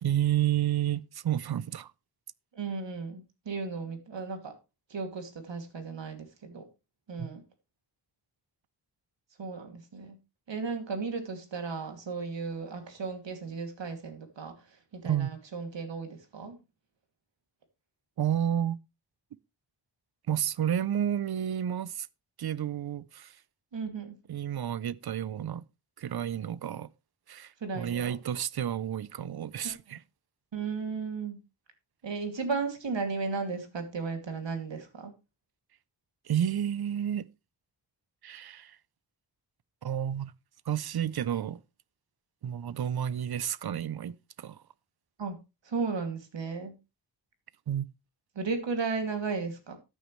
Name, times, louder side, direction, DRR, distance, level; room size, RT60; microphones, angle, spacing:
voice 1, 0.0-1.9 7.2-7.3 15.0-15.3 18.2-18.8 20.3-22.1 22.4-23.4 24.3-25.6 26.0-26.9 27.3-30.0 36.3-37.3 38.2-38.8 39.8-40.3 40.7-41.6 42.4-44.6 47.7-47.9, right 10 dB, 60° right, 0.6 m, -31 dB
voice 2, 2.5-4.6 4.9-6.7 7.1-7.4 9.4-10.2 10.5-16.6 23.7-24.2 27.6-28.2 29.6-30.0 30.5-31.4 32.0-35.1 45.2-45.4 45.6-46.8 48.3-49.8, right 4 dB, 80° right, 2.6 m, -35 dB
13.5 x 9.4 x 3.2 m
wide cardioid pair, 115°, 43 cm